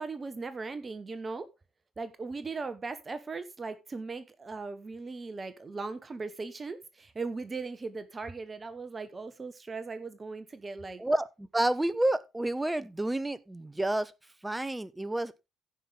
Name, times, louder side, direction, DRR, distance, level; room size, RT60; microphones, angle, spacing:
voice 1, 0.0-1.5 2.0-11.0, right 4 dB, 35° right, 1.2 m, -38 dB
voice 2, 11.0-14.1 14.4-15.3, right 1 dB, 15° right, 1.0 m, -29 dB
16.0 x 5.6 x 3.5 m
hypercardioid pair, 45°, 0 cm